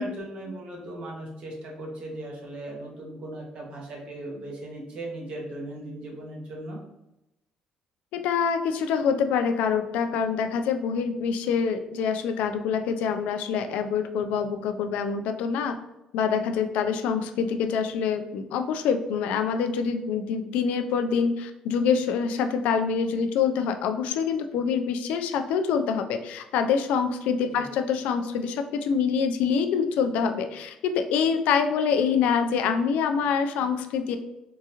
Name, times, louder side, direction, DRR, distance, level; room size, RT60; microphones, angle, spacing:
voice 1, 0.0-6.8 27.4-27.7, right 1 dB, 55° right, -2 dB, 1.1 m, -38 dB
voice 2, 8.1-15.8 16.1-34.2, left 6 dB, 85° left, 7 dB, 0.3 m, -25 dB
3.7 x 2.4 x 2.9 m, 0.89 s
cardioid pair, 120°, 2 cm